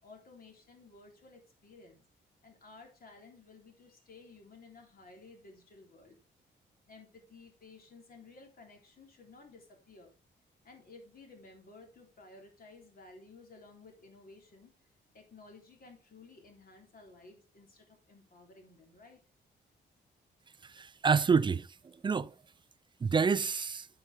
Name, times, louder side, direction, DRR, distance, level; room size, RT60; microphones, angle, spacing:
voice 1, 0.0-2.0 2.4-6.2 6.9-10.1 10.6-14.7 15.1-19.2, left 3 dB, 50° left, 3.7 m, -55 dB
voice 2, 20.6-21.7 22.0-22.3 23.0-23.9, right 5 dB, 25° right, 0.4 m, -28 dB
8.8 x 7.7 x 3.9 m
cardioid pair, 110°, 19 cm